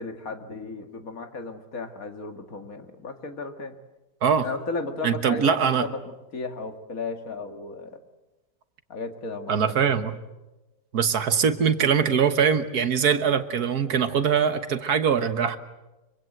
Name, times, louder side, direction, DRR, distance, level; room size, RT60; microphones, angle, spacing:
voice 1, 0.0-3.8 4.4-6.0 6.3-8.0 8.9-9.9, left 3 dB, 60° left, 6 dB, 2.4 m, -35 dB
voice 2, 5.0-5.9 9.5-10.2 10.9-15.6, right 7 dB, 70° right, 10 dB, 1.7 m, -22 dB
25.5 x 24.5 x 7.9 m, 1.1 s
omnidirectional pair, 1.7 m